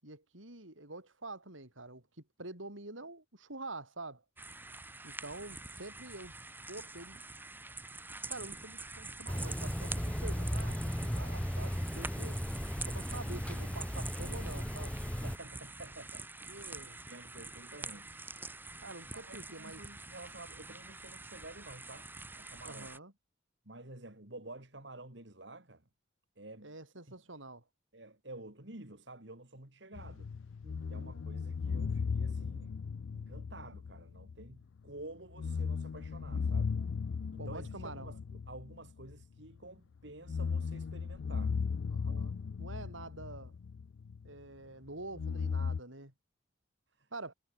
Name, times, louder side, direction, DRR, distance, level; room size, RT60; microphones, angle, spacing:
voice 1, 0.0-2.0 2.4-4.2 5.0-6.3 6.7-7.2 8.3-12.4 12.9-14.9 16.5-17.0 18.8-19.8 22.6-23.1 26.6-27.6 30.6-31.1 37.4-38.1 41.9-43.5 44.2-46.1 47.1-47.3, right 2 dB, 90° right, 7.8 m, -47 dB
sound 1, 4.4-23.0, right 3 dB, 10° right, 1.2 m, -46 dB
sound 2, 9.3-15.4, equal, 5° left, 1.6 m, -36 dB
voice 2, 15.2-16.7 17.1-18.2 19.1-22.1 22.3-22.9 23.7-25.8 26.4-26.7 27.1-27.2 27.9-30.3 30.9-32.7 33.1-36.8 37.3-41.6 47.0-47.1, right 2 dB, 65° right, 3.7 m, -50 dB
sound 3, 29.9-34.6 34.9-35.0 35.3-39.6 40.1-44.4 45.1-45.8, left 5 dB, 80° left, 0.4 m, -37 dB
head